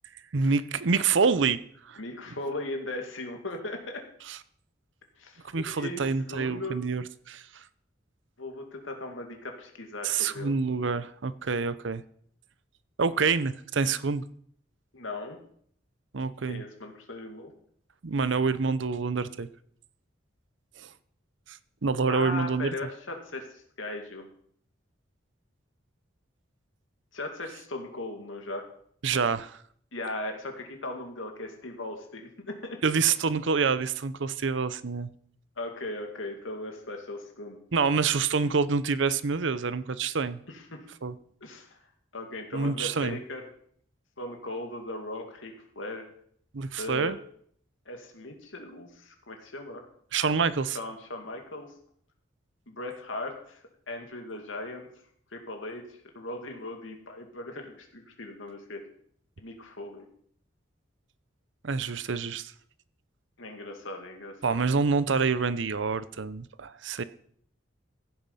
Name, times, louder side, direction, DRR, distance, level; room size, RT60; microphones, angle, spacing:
voice 1, 0.3-1.6 1.9-2.0 4.3-4.4 5.5-7.6 10.0-12.0 13.0-14.2 16.1-16.6 18.0-19.5 20.8-20.9 21.5-22.7 29.0-29.6 32.8-35.1 37.7-40.4 41.0-41.1 42.5-43.2 46.5-47.2 50.1-50.8 61.6-62.5 64.4-67.0, right 5 dB, 70° right, 0.7 m, -27 dB
voice 2, 2.0-4.0 5.2-6.8 8.4-10.5 14.9-15.4 16.5-17.5 22.1-24.3 27.1-28.7 29.9-32.8 35.6-37.6 40.5-40.8 41.4-41.8 42.1-43.5 44.2-46.1 46.8-47.2 47.9-49.8 50.7-51.7 52.7-54.9 55.3-55.8 56.1-58.8 59.4-60.1 63.4-64.6, left 2 dB, 85° left, 2.3 m, -38 dB
15.5 x 7.3 x 5.5 m
head